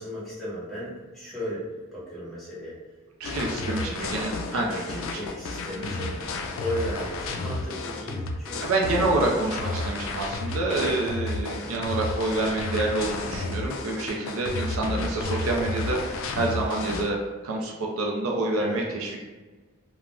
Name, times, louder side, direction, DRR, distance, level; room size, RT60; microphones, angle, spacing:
voice 1, 0.0-2.7 3.4-4.2 4.5-6.2 6.5-9.3 11.6-11.9 18.6-19.0, equal, ahead, -10 dB, 1.0 m, -36 dB
sound 1, 3.2-17.1, left 3 dB, 70° left, 0.3 m, -32 dB
voice 2, 3.2-5.1 5.8-6.2 8.6-19.2, right 2 dB, 80° right, -1 dB, 0.4 m, -28 dB
2.4 x 2.1 x 3.3 m, 1.3 s
head